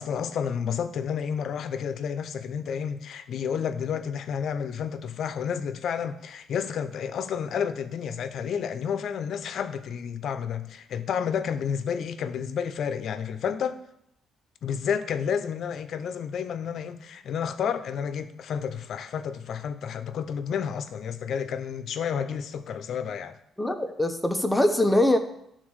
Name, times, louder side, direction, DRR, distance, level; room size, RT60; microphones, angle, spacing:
voice 1, 0.0-13.8 14.6-23.4, left 7 dB, 65° left, 0.7 m, -30 dB
voice 2, 23.6-25.2, left 1 dB, 10° left, 1.0 m, -22 dB
12.0 x 4.0 x 6.4 m
cardioid pair, 90°, 0 cm